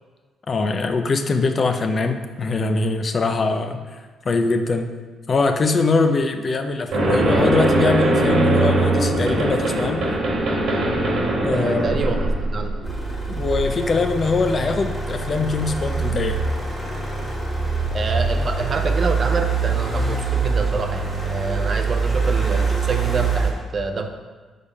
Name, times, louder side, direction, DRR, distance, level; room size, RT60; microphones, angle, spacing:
voice 1, 0.5-4.0 4.2-4.9 5.3-10.1 11.4-12.0 13.3-16.4, left 3 dB, 40° left, 7 dB, 0.5 m, -22 dB
sound 1, 6.9-13.0, right 2 dB, 70° right, 1.3 m, -20 dB
voice 2, 11.5-12.8 17.9-24.1, right 4 dB, 45° right, 6 dB, 0.6 m, -27 dB
sound 2, 12.8-23.5, right 4 dB, ahead, 1.6 m, -24 dB
5.1 x 3.5 x 5.3 m, 1.4 s
cardioid pair, 90°, 0 cm